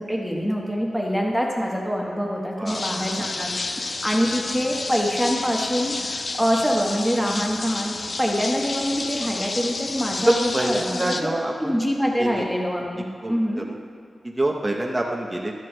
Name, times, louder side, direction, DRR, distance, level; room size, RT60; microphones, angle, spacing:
voice 1, 0.0-11.3 11.6-13.7, equal, ahead, -2 dB, 1.1 m, -25 dB
sound 1, 2.7-11.2, left 3 dB, 45° left, 0.5 m, -30 dB
voice 2, 10.2-11.8 12.2-12.4 13.2-13.7 14.2-15.5, right 1 dB, 15° right, -1 dB, 0.7 m, -25 dB
13.5 x 12.5 x 2.2 m, 2.4 s
wide cardioid pair, 145°, 0 cm